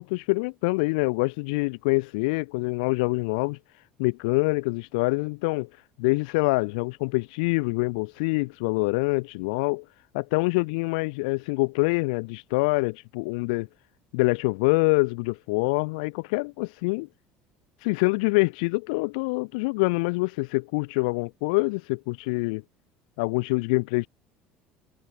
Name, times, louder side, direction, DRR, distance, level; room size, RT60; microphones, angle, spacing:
voice 1, 0.0-3.6 4.0-5.7 6.0-9.8 10.1-13.7 14.1-17.1 17.8-22.6 23.2-24.1, left 28 dB, 85° left, 3.1 m, -25 dB
supercardioid pair, 95°, 4 cm